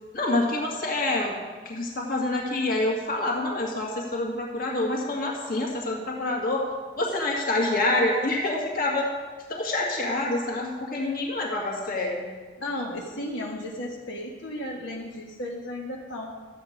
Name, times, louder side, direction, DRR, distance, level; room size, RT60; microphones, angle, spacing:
voice 1, 0.1-1.4 1.7-6.7 7.0-9.1 9.5-12.3, left 2 dB, 50° left, -1 dB, 1.9 m, -27 dB
voice 2, 12.6-16.3, left 1 dB, 85° left, -2 dB, 1.5 m, -34 dB
12.5 x 7.9 x 5.1 m, 1.4 s
head